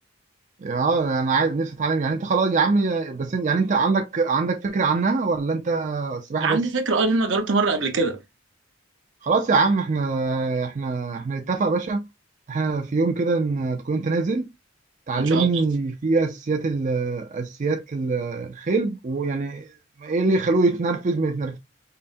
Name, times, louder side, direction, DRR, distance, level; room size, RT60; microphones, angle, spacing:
voice 1, 0.6-6.6 9.2-12.1 12.5-14.5 15.1-19.7 20.0-21.6, right 4 dB, 40° right, 0.4 m, -23 dB
voice 2, 6.4-8.2 15.1-15.6, right 3 dB, 75° right, 0.9 m, -23 dB
5.5 x 2.1 x 2.6 m
head